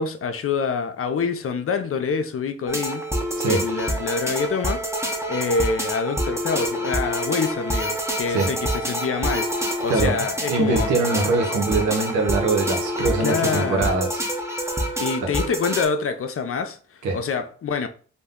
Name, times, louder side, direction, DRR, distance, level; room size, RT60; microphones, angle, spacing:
voice 1, 0.0-3.0 3.5-4.8 5.3-9.5 9.8-10.9 13.2-14.1 15.0-16.8 17.1-17.9, left 5 dB, 50° left, 0.5 m, -26 dB
sound 1, 2.7-15.9, equal, 10° right, 0.7 m, -27 dB
voice 2, 10.5-14.2 15.2-15.3 17.0-17.2, right 3 dB, 85° right, 0.8 m, -23 dB
2.5 x 2.1 x 3.6 m
cardioid pair, 50°, 29 cm